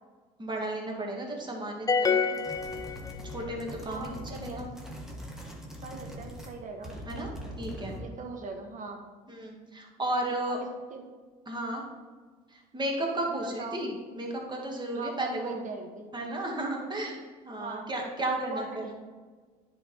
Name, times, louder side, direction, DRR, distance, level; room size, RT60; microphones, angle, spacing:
voice 1, 0.4-2.3 3.3-4.7 7.1-7.3 7.6-8.0 9.3-10.6 11.5-11.8 12.5-15.7 16.1-17.2 17.4-18.9, right 1 dB, 25° right, -1 dB, 2.2 m, -34 dB
sound 1, 1.9-3.6, left 5 dB, 20° left, 0.4 m, -27 dB
sound 2, 2.3-6.6 6.8-8.1, equal, ahead, 1.6 m, -42 dB
voice 2, 3.8-4.7 5.8-6.9 7.9-9.1 10.5-11.1 13.3-13.9 14.9-16.1 17.6-17.9 18.3-18.9, right 4 dB, 45° right, 4 dB, 1.5 m, -40 dB
10.0 x 3.9 x 4.5 m, 1.5 s
hypercardioid pair, 70°, 19 cm